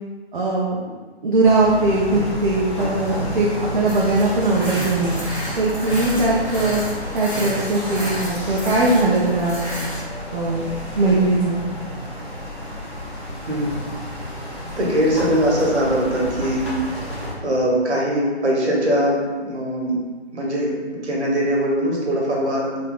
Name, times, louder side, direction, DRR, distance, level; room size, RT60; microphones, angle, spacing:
voice 1, 0.3-5.1 5.6-6.8 7.1-9.8 10.3-10.7 11.0-11.6, right 2 dB, 50° right, -4 dB, 0.5 m, -20 dB
sound 1, 1.4-17.3, equal, 25° left, 0.6 m, -31 dB
sound 2, 3.8-10.0, right 1 dB, 5° left, 1.2 m, -32 dB
voice 2, 14.8-16.7 17.4-20.0 20.3-22.9, equal, 75° right, -3 dB, 1.0 m, -21 dB
4.1 x 2.6 x 2.3 m, 1.4 s
figure-of-eight pair, 150°, 34 cm